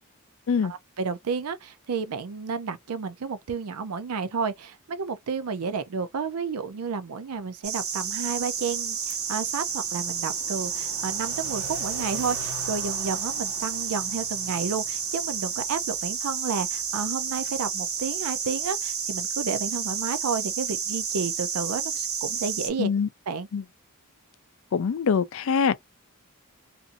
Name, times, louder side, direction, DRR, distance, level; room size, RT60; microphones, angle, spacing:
voice 1, 0.6-22.9 23.3-23.5, right 5 dB, 85° right, 0.5 m, -31 dB
sound 1, 7.6-22.7, right 7 dB, 70° right, 1.1 m, -30 dB
voice 2, 22.8-23.1 23.5-23.6 24.7-25.8, left 6 dB, 60° left, 0.4 m, -24 dB
2.5 x 2.5 x 2.5 m
head